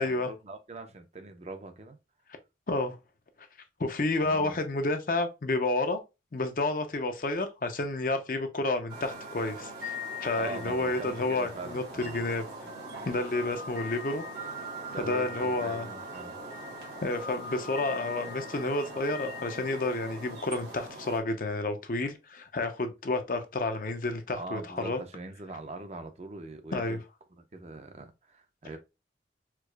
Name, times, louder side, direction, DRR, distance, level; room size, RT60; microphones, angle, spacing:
voice 1, 0.0-2.0 4.2-4.6 10.4-12.3 14.9-16.4 16.8-17.0 24.4-27.0 27.3-28.8, right 2 dB, 35° right, 0.5 m, -42 dB
voice 2, 2.7-3.0 3.8-6.0 6.3-12.4 13.1-14.3 15.1-15.9 17.0-25.0 26.7-27.0, left 2 dB, 50° left, 0.6 m, -30 dB
sound 1, 8.9-21.2, left 1 dB, 80° right, 1.6 m, -40 dB
4.5 x 2.4 x 2.2 m
head